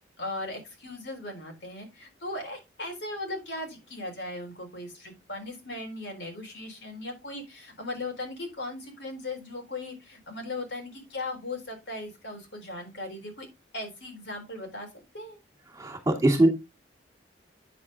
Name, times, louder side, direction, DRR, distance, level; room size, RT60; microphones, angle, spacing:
voice 1, 0.2-13.5 13.7-15.4, left 2 dB, 65° left, 2 dB, 4.1 m, -38 dB
voice 2, 15.8-16.5, right 1 dB, 15° right, 2 dB, 2.6 m, -21 dB
9.1 x 7.6 x 3.6 m, 0.23 s
head